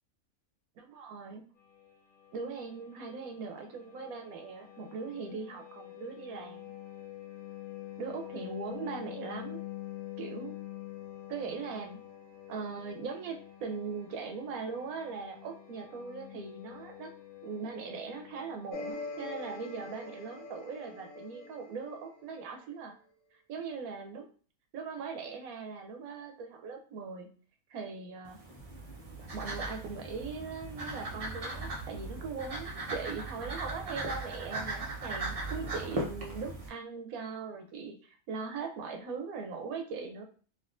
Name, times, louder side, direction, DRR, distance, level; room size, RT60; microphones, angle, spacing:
voice 1, 0.8-1.4 2.3-6.7 8.0-9.6 10.2-10.5 11.3-12.0 12.5-17.1 17.4-22.9 23.5-24.3 24.7-27.3 27.7-28.4 29.3-40.2, right 5 dB, 80° right, 4 dB, 1.1 m, -40 dB
sound 1, 1.6-18.9, left 14 dB, 35° left, 0.8 m, -47 dB
sound 2, 18.7-22.6, left 3 dB, 85° left, 1.1 m, -43 dB
sound 3, 28.2-36.7, right 2 dB, 40° right, 0.5 m, -38 dB
3.5 x 2.4 x 2.4 m, 0.41 s
omnidirectional pair, 1.5 m